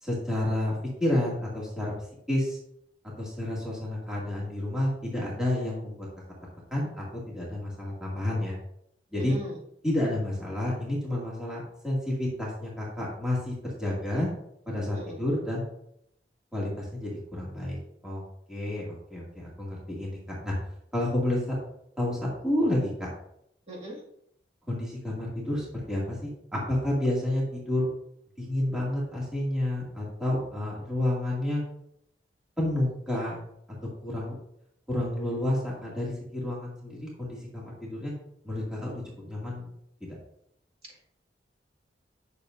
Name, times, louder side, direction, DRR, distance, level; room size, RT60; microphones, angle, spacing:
voice 1, 0.0-1.9 2.3-2.6 3.2-6.1 6.7-8.6 9.1-9.4 9.8-14.3 14.7-15.6 16.5-17.8 18.0-18.2 18.5-20.5 20.9-21.6 22.0-23.1 24.7-27.9 28.4-31.6 32.6-33.4 34.0-34.4 34.9-38.1 38.4-39.7 40.0-40.2, left 1 dB, 5° right, -6 dB, 2.3 m, -30 dB
voice 2, 9.1-9.5 14.9-15.2 23.7-24.0, right 1 dB, 35° right, -4 dB, 2.2 m, -38 dB
10.5 x 6.6 x 2.6 m, 0.75 s
head